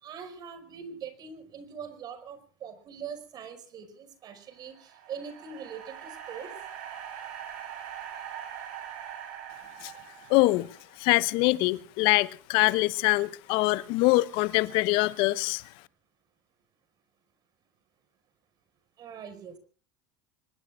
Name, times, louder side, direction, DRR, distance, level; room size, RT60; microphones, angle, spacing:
voice 1, 0.0-6.5 19.0-19.6, right 7 dB, 45° right, 5.3 m, -42 dB
sound 1, 4.5-10.9, right 9 dB, 75° right, 7.6 m, -42 dB
voice 2, 10.3-10.7 11.0-15.6, left 21 dB, 65° left, 1.0 m, -24 dB
26.0 x 21.0 x 2.4 m
supercardioid pair, 95°, 9 cm